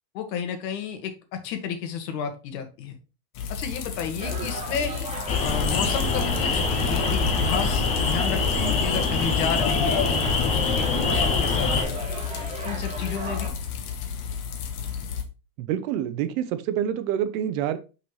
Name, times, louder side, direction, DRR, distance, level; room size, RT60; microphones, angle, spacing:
voice 1, 0.1-3.0 3.5-4.9 5.4-10.0 10.4-12.0 12.6-13.5, left 7 dB, 75° left, 6 dB, 1.8 m, -32 dB
sound 1, 3.3-15.2, left 7 dB, 60° left, 1.5 m, -33 dB
sound 2, 4.2-13.5, right 1 dB, 15° right, 2.2 m, -36 dB
sound 3, 5.3-11.8, left 4 dB, 15° left, 0.3 m, -24 dB
voice 2, 15.6-17.8, right 10 dB, 55° right, 11 dB, 0.9 m, -27 dB
5.6 x 5.6 x 3.2 m, 0.32 s
supercardioid pair, 165°, 49 cm